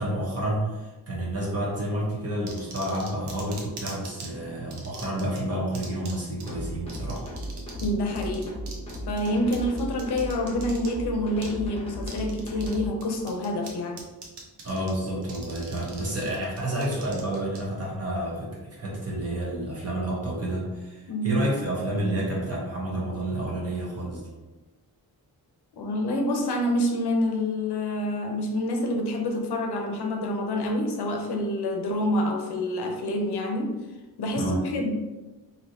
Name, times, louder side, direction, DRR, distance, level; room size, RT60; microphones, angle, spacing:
voice 1, 0.0-7.2 14.6-24.3 34.3-34.6, right 1 dB, 40° right, -4 dB, 1.0 m, -30 dB
sound 1, 2.5-4.3 4.7-5.4 5.7-6.1 6.4-6.5 6.9-7.9 8.2-10.9 11.4-11.5 12.0-12.8 13.0-13.7 14.0-14.9 15.2-17.6, right 4 dB, 85° right, 0.8 m, -42 dB
sound 2, 6.5-12.9, equal, 15° left, 0.6 m, -36 dB
voice 2, 7.8-8.6 9.1-14.1 21.1-21.4 25.7-33.8 34.2-34.9, left 1 dB, 90° left, 2 dB, 0.6 m, -27 dB
3.2 x 2.7 x 2.7 m, 1.2 s
wide cardioid pair, 175°, 39 cm